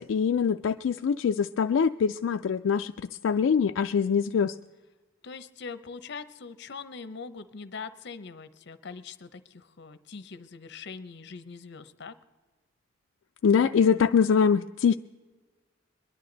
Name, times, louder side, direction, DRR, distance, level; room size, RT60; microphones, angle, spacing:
voice 1, 0.0-2.9 3.2-4.6 13.4-14.9, left 6 dB, 80° left, 6 dB, 0.3 m, -23 dB
voice 2, 5.2-12.1, left 5 dB, 60° left, 13 dB, 0.7 m, -42 dB
22.0 x 11.0 x 3.9 m, 1.3 s
head